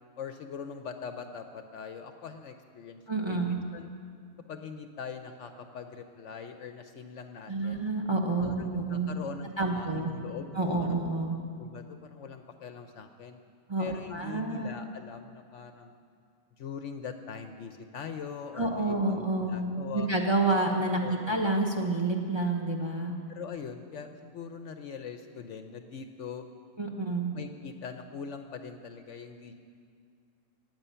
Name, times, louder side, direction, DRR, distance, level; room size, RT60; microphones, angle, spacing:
voice 1, 0.2-3.9 4.5-7.9 8.4-11.0 11.6-13.4 13.8-15.9 16.6-20.1 21.0-21.4 23.3-26.5 27.3-29.5, left 6 dB, 65° left, 7 dB, 0.9 m, -42 dB
voice 2, 3.1-3.6 7.5-9.2 9.6-10.1 10.5-11.4 13.7-14.7 18.6-19.7 19.9-21.0 21.3-23.1 26.8-27.3, right 2 dB, 20° right, 2 dB, 1.0 m, -29 dB
20.0 x 7.8 x 5.6 m, 2.2 s
omnidirectional pair, 1.5 m